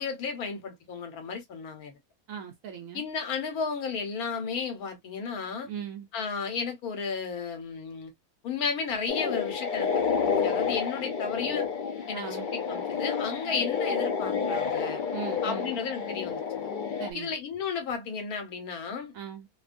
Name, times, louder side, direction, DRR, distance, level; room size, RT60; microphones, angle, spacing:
voice 1, 0.0-2.0 2.9-5.7 6.1-8.1 8.4-9.9 10.2-11.7 12.1-15.0 15.4-16.7 17.1-19.1, left 5 dB, 85° left, 1.4 m, -33 dB
voice 2, 2.3-3.0 5.6-6.1 12.1-12.5 15.1-15.8 17.0-17.3 19.1-19.5, right 8 dB, 75° right, 1.0 m, -39 dB
sound 1, 9.1-17.1, left 6 dB, 60° left, 0.5 m, -30 dB
2.7 x 2.2 x 2.4 m
omnidirectional pair, 1.5 m